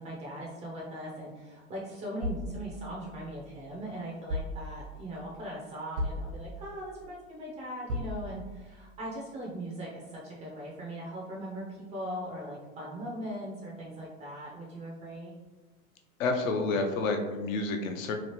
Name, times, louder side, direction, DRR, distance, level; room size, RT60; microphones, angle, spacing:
voice 1, 0.0-15.4, right 1 dB, 15° right, -4 dB, 0.3 m, -40 dB
sound 1, 2.2-3.6 4.3-5.1 6.0-6.9 7.9-8.7, left 1 dB, 80° right, 0.8 m, -37 dB
voice 2, 16.2-18.1, left 3 dB, 70° left, 4 dB, 0.5 m, -29 dB
3.0 x 2.4 x 3.0 m, 1.2 s
hypercardioid pair, 110°, 42 cm